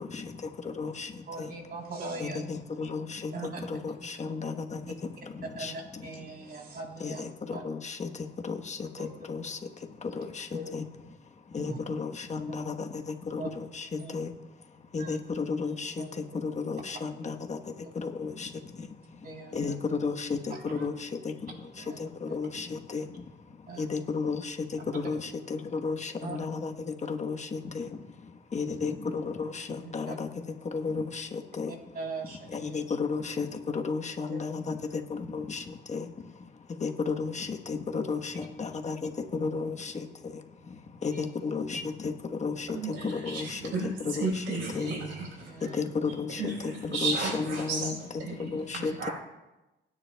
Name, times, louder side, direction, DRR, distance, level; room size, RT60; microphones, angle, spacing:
voice 1, 0.0-1.6 2.2-6.4 7.0-31.8 32.5-44.4 44.7-44.9 45.6-49.1, left 4 dB, 35° left, 4 dB, 1.2 m, -34 dB
voice 2, 1.3-2.4 3.3-3.7 5.6-7.2 7.5-7.6 9.0-9.1 9.4-9.5 10.1-10.2 10.5-10.7 11.7-11.8 13.4-13.5 14.0-14.1 15.0-15.2 16.0-16.2 19.2-19.7 20.5-20.8 21.8-22.4 23.7-23.9 26.2-26.4 29.8-30.1 31.9-32.5 34.3-34.4 41.1-41.2 45.4-45.8, right 3 dB, 50° right, 1 dB, 3.4 m, -40 dB
voice 3, 42.7-45.5 46.3-49.1, right 3 dB, 80° right, -2 dB, 4.9 m, -34 dB
25.0 x 9.9 x 2.3 m, 1.0 s
cardioid pair, 90°, 20 cm